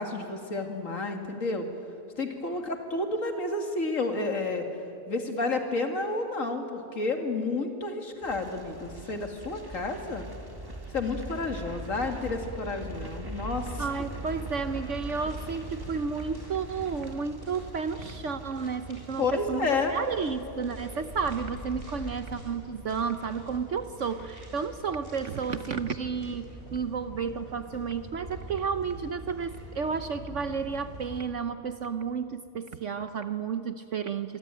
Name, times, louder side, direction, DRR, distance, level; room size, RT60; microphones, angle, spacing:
voice 1, 0.0-1.7 2.2-4.7 5.1-10.2 10.9-13.9 19.2-19.9, left 3 dB, 50° left, 4 dB, 2.6 m, -30 dB
sound 1, 8.2-19.4 19.6-20.0 20.3-20.4, right 1 dB, 15° right, 2.1 m, -41 dB
sound 2, 13.5-31.2, right 1 dB, 35° right, 6.5 m, -44 dB
voice 2, 13.8-34.4, right 5 dB, 55° right, 10 dB, 1.0 m, -32 dB
25.5 x 24.0 x 9.1 m, 2.7 s
omnidirectional pair, 1.7 m